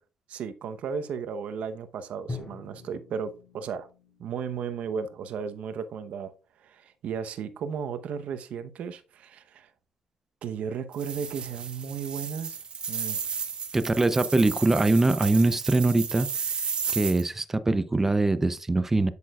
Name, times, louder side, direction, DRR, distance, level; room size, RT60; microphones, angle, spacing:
voice 1, 0.3-3.9 4.2-6.3 6.6-9.7 10.4-12.6 12.9-13.2, right 6 dB, 65° right, 0.9 m, -34 dB
Drum, 2.3-6.3, left 3 dB, 20° left, 3.5 m, -44 dB
sound 1, 10.9-17.2, right 6 dB, 45° right, 1.6 m, -33 dB
voice 2, 13.7-16.3 16.9-19.1, right 2 dB, 15° right, 0.6 m, -23 dB
8.6 x 8.3 x 2.4 m
cardioid pair, 125°, 2 cm